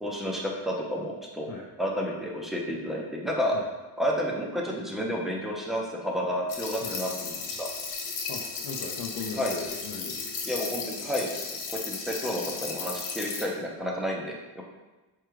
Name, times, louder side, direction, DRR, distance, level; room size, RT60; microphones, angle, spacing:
voice 1, 0.0-1.5 1.8-3.6 4.0-7.7 9.4-9.5 10.5-11.3 11.7-14.6, equal, ahead, -1 dB, 0.6 m, -31 dB
sound 1, 6.5-13.4, left 5 dB, 80° left, 1.0 m, -35 dB
voice 2, 8.3-10.5, left 4 dB, 60° left, -2 dB, 0.6 m, -38 dB
4.8 x 2.3 x 4.6 m, 1.2 s
cardioid pair, 135°, 40 cm